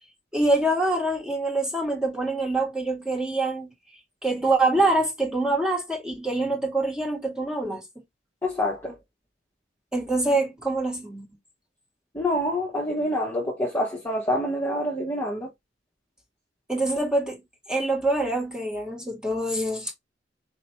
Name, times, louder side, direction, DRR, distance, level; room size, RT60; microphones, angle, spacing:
voice 1, 0.3-3.7 4.2-7.8 9.9-11.3 16.7-17.4 17.7-19.9, right 2 dB, 5° right, 1.6 m, -25 dB
voice 2, 8.4-8.9 12.1-15.5, left 1 dB, 15° left, 1.1 m, -26 dB
4.5 x 2.9 x 2.9 m
head